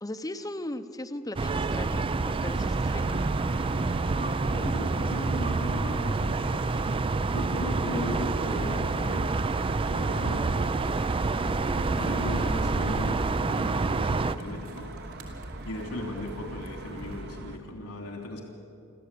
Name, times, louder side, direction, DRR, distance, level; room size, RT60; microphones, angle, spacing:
voice 1, 0.0-3.2, left 1 dB, 15° left, 10 dB, 0.8 m, -37 dB
sound 1, 1.4-14.4, right 3 dB, 25° right, 0.4 m, -28 dB
sound 2, 2.5-17.6, right 2 dB, 50° right, 1.1 m, -41 dB
voice 2, 4.3-6.7 7.3-9.3 9.9-10.7 11.9-13.2 13.6-14.9 15.6-18.4, left 1 dB, 85° left, 1 dB, 3.2 m, -37 dB
sound 3, 11.1-17.2, equal, 70° right, 3.8 m, -43 dB
25.0 x 14.5 x 8.5 m, 2.6 s
head